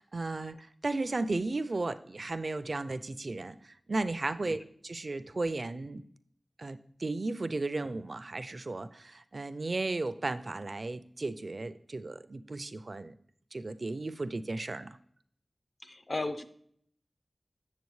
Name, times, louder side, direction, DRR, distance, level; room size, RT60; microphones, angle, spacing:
voice 1, 0.0-6.0 6.6-13.1 13.5-15.0, right 2 dB, 65° right, 13 dB, 0.4 m, -35 dB
voice 2, 15.8-16.4, left 2 dB, 55° left, 9 dB, 0.6 m, -35 dB
8.2 x 6.9 x 3.1 m, 0.63 s
wide cardioid pair, 45°, 0 cm